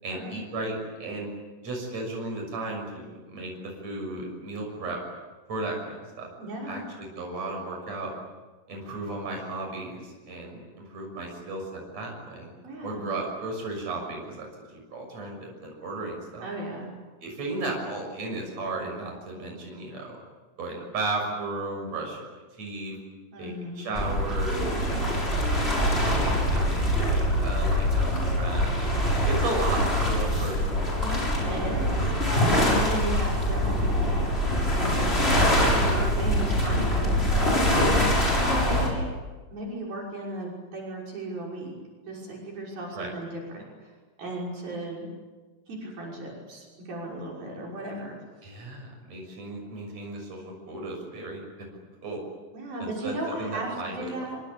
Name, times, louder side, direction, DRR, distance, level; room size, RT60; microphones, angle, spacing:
voice 1, 0.0-1.3 1.6-5.0 5.5-6.3 6.7-8.1 8.7-12.5 12.8-16.5 17.2-20.2 20.6-22.3 22.6-23.0 23.4-25.3 26.0-28.9 29.2-31.3 36.3-36.7 42.9-43.1 48.4-51.4 52.0-52.2 52.8-54.3, right 2 dB, 45° right, 1 dB, 7.6 m, -35 dB
voice 2, 6.4-6.8 12.6-13.1 16.4-16.9 23.3-24.1 31.0-32.0 32.5-34.3 34.6-37.4 37.7-39.1 39.5-41.8 42.1-43.9 44.2-45.1 45.7-48.2 52.5-54.4, right 1 dB, 65° right, -3 dB, 7.7 m, -35 dB
sound 1, 23.9-38.9, equal, 15° left, 7.1 m, -24 dB
26.0 x 25.5 x 8.7 m, 1.3 s
omnidirectional pair, 4.5 m